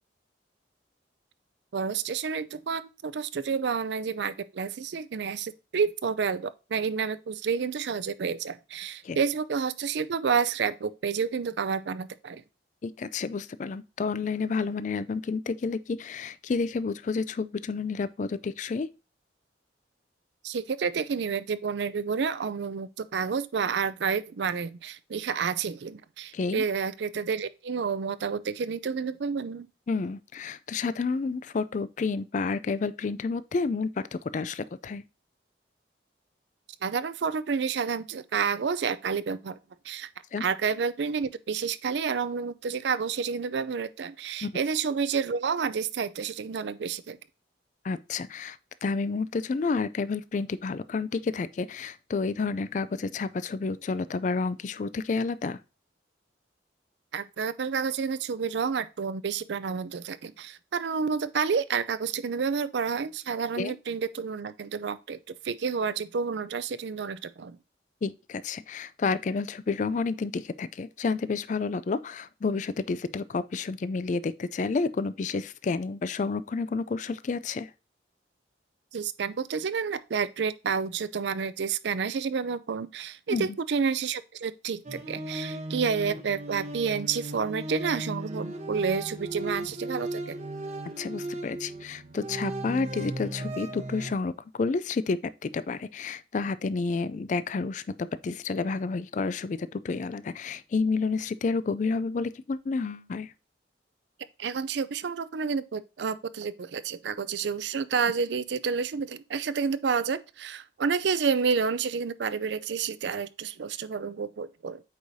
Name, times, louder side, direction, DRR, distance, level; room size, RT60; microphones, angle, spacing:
voice 1, 1.7-12.4 20.4-29.7 36.8-39.6 39.8-40.1 40.4-47.2 57.1-65.2 65.4-67.6 78.9-90.4 104.4-114.8, right 6 dB, 75° right, 0.4 m, -30 dB
voice 2, 12.8-18.9 26.3-26.6 29.9-35.0 40.3-40.4 44.4-44.6 47.8-55.6 63.6-63.8 68.0-77.7 83.3-83.6 91.0-103.3, left 4 dB, 45° left, 0.3 m, -30 dB
sound 1, 84.8-94.1, right 1 dB, 40° right, 0.8 m, -36 dB
8.2 x 4.8 x 2.6 m
head